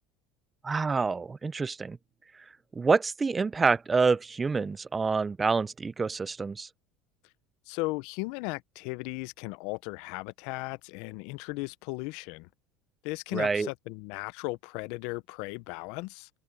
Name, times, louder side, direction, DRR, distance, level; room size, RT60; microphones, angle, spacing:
voice 1, 0.6-2.0 2.7-6.7 13.3-13.7, right 4 dB, 15° right, 0.3 m, -27 dB
voice 2, 7.7-12.5 13.0-16.3, left 24 dB, 65° left, 0.5 m, -36 dB
cardioid pair, 155°, 0 cm